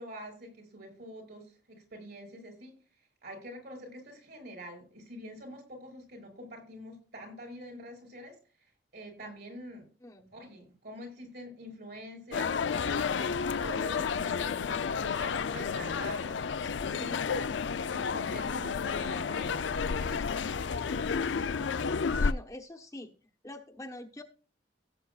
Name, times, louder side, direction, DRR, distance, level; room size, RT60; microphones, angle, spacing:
voice 1, 0.0-2.8 3.2-8.4 8.9-9.9 10.3-13.4 13.6-16.5 16.9-20.2, equal, 60° right, 1 dB, 5.6 m, -46 dB
sound 1, 12.3-22.3, left 5 dB, 80° left, 0.5 m, -31 dB
voice 2, 22.2-23.1 23.4-24.2, left 1 dB, 15° left, 2 dB, 1.0 m, -44 dB
17.0 x 8.3 x 2.4 m, 0.37 s
head